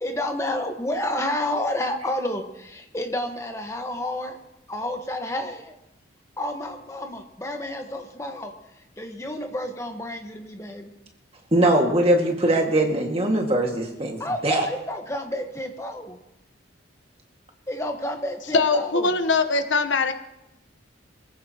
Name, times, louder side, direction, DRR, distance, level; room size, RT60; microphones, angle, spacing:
voice 1, 0.0-4.3 4.7-5.6 6.4-8.5 9.0-10.9 14.2-16.2 17.7-19.1, left 1 dB, 15° left, 4 dB, 1.3 m, -30 dB
voice 2, 11.5-14.7, right 1 dB, 30° right, 1 dB, 1.9 m, -21 dB
voice 3, 18.5-20.1, left 3 dB, 70° left, 9 dB, 1.0 m, -21 dB
23.5 x 15.5 x 2.9 m, 0.89 s
head